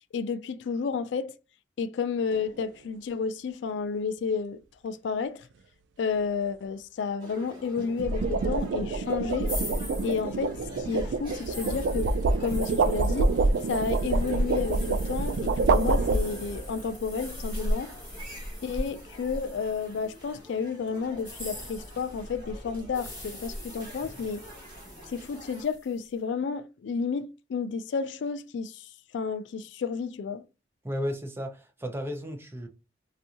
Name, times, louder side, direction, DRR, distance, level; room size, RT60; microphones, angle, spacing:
voice 1, 0.1-1.4 1.8-5.5 6.0-9.5 10.0-12.1 12.4-13.3 13.7-17.9 18.6-24.4 25.1-30.4, left 5 dB, 80° left, 0.3 m, -31 dB
sound 1, 2.3-2.6 7.8-16.7, right 3 dB, 80° right, 0.3 m, -27 dB
sound 2, 7.2-25.6, equal, 30° right, 1.4 m, -47 dB
sound 3, 9.4-20.4 21.1-26.0, equal, 10° left, 1.4 m, -40 dB
voice 2, 30.8-32.7, equal, 15° right, 0.5 m, -34 dB
2.6 x 2.4 x 2.7 m
head